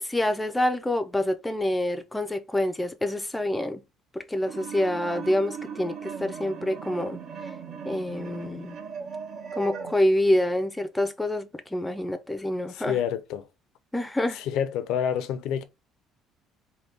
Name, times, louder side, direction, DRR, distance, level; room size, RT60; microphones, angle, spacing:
voice 1, 0.0-3.8 4.1-7.2 7.8-8.8 9.5-13.0 13.9-14.4, left 1 dB, 5° left, 0.4 m, -27 dB
sound 1, 4.5-9.9, right 6 dB, 45° right, 0.6 m, -38 dB
voice 2, 12.9-13.4 14.5-15.6, left 9 dB, 75° left, 0.5 m, -27 dB
3.9 x 2.2 x 3.4 m
cardioid pair, 145°, 0 cm